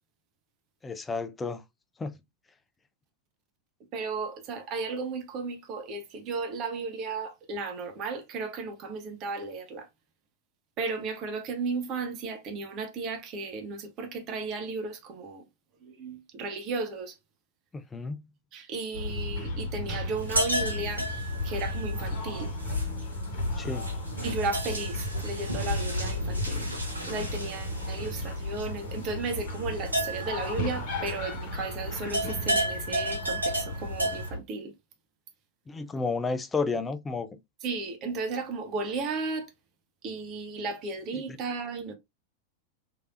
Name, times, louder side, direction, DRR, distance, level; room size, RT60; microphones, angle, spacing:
voice 1, 0.8-1.6 2.0-2.1 17.7-18.2 23.6-23.9 35.7-37.4, left 4 dB, 15° left, 0.4 m, -31 dB
voice 2, 3.9-9.9 10.8-15.4 15.8-17.2 18.5-21.1 21.4-22.5 24.2-26.7 27.1-34.7 37.6-39.5 40.0-41.9, right 4 dB, 35° right, 0.7 m, -34 dB
sound 1, 18.9-34.4, left 1 dB, 45° left, 1.2 m, -34 dB
sound 2, 20.2-31.6 31.9-34.3, right 1 dB, 80° right, 0.9 m, -33 dB
3.2 x 2.9 x 2.4 m
figure-of-eight pair, 90°, 0 cm